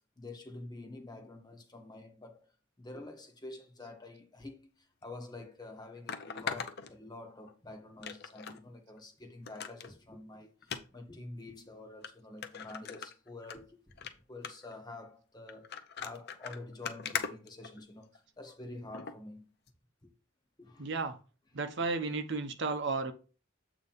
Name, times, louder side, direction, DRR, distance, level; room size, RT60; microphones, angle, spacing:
voice 1, 0.2-2.5 2.8-13.8 14.3-19.5 20.0-20.1 20.6-21.0 21.8-21.9, left 2 dB, 20° left, 1.2 m, -48 dB
sound 1, 5.0-5.1 6.1-7.5 8.0-8.6 9.0-9.1 9.5-9.9 10.6-10.8 11.6-11.7 12.0-12.1 12.4-13.6 13.9-14.1 14.4-14.7 15.5-18.2 18.9-19.2 19.7-19.8, left 6 dB, 50° left, 0.7 m, -40 dB
voice 2, 20.8-21.2 21.5-23.1, right 3 dB, 60° right, 0.8 m, -33 dB
7.9 x 3.0 x 5.5 m
head